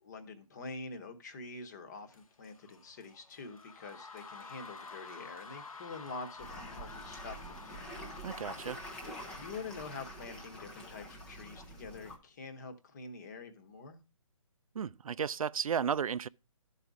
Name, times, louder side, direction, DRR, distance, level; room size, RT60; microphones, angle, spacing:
voice 1, 0.0-8.0 9.4-14.0, left 3 dB, 30° left, 1.1 m, -46 dB
sound 1, 2.1-10.4, left 4 dB, 90° left, 1.2 m, -50 dB
sound 2, 6.4-12.2, equal, 5° left, 0.4 m, -46 dB
voice 2, 8.2-8.8 14.8-16.3, right 7 dB, 80° right, 0.4 m, -33 dB
12.0 x 4.1 x 4.8 m
hypercardioid pair, 160°, 18 cm